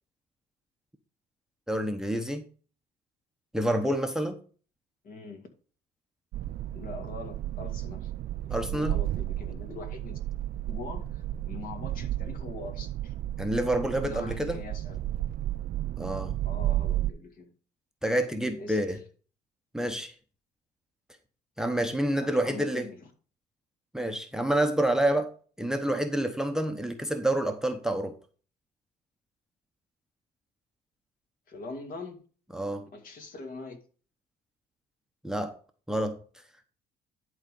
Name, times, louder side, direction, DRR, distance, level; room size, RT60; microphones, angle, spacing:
voice 1, 1.7-2.4 3.5-4.4 8.5-9.0 13.4-14.6 16.0-16.3 18.0-19.0 19.7-20.1 21.6-22.9 23.9-25.3 25.6-28.2 32.5-32.8 35.2-35.5 35.9-36.2, right 1 dB, 5° right, 0.9 m, -28 dB
voice 2, 5.0-5.5 6.7-8.1 8.5-10.2 10.7-13.1 14.0-15.0 16.4-17.5 18.6-18.8 22.2-23.1 31.5-32.2 32.9-33.8, left 3 dB, 55° left, 2.3 m, -42 dB
sound 1, 6.3-17.1, right 14 dB, 60° right, 0.4 m, -33 dB
11.0 x 3.9 x 5.3 m
cardioid pair, 110°, 17 cm